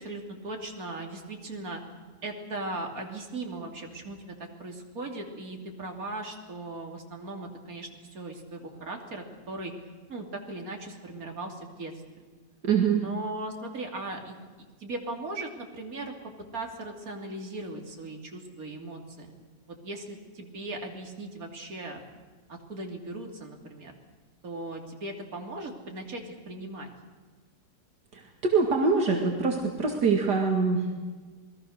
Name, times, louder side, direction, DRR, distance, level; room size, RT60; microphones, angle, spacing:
voice 1, 0.0-1.8 2.2-9.7 10.1-11.9 12.9-16.1 16.5-19.3 19.8-22.0 22.5-23.9 24.4-26.9, right 2 dB, 55° right, 2 dB, 3.3 m, -38 dB
voice 2, 12.6-13.0 28.1-30.9, right 5 dB, 70° right, 1 dB, 2.7 m, -24 dB
27.5 x 20.5 x 6.6 m, 1.4 s
omnidirectional pair, 1.9 m